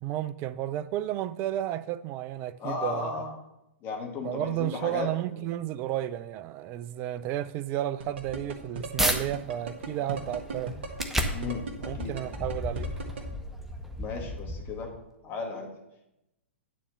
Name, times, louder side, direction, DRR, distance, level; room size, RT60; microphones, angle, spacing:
voice 1, 0.0-3.1 4.2-10.8 11.8-12.9, right 12 dB, 35° right, 0.4 m, -32 dB
voice 2, 2.6-3.3 3.8-5.1 5.3-5.5 11.3-12.1 14.0-14.9 15.2-15.7, left 4 dB, 30° left, 1.9 m, -35 dB
sound 1, 8.0-13.2, right 4 dB, 60° right, 1.5 m, -36 dB
sound 2, 8.2-9.2 9.7-15.0, equal, 5° right, 0.9 m, -33 dB
9.3 x 4.2 x 6.9 m
figure-of-eight pair, 110°, 7 cm